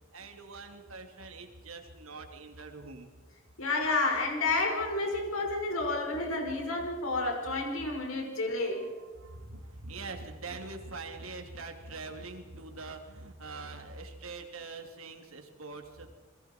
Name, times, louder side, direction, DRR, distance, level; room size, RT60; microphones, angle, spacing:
voice 1, 0.1-3.1 8.8-16.1, right 3 dB, 75° right, 4 dB, 3.0 m, -44 dB
voice 2, 3.6-8.9, left 2 dB, 70° left, 2 dB, 5.4 m, -30 dB
29.5 x 22.5 x 4.6 m, 1.5 s
head